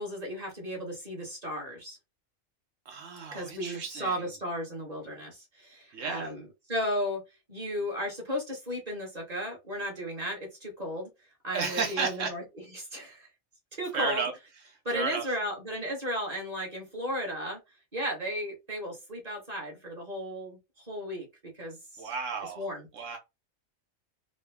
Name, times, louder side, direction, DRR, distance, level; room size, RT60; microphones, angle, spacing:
voice 1, 0.0-2.0 3.3-7.2 7.5-11.1 11.4-12.4 12.7-13.3 13.8-14.2 14.8-17.6 17.9-22.1 22.4-23.2, equal, 30° right, 1.4 m, -35 dB
voice 2, 2.9-4.2 5.9-6.2 11.5-12.3 13.9-14.3 14.9-15.2 22.0-22.6 22.9-23.2, right 5 dB, 70° right, 1.1 m, -32 dB
3.8 x 2.2 x 3.4 m
omnidirectional pair, 1.4 m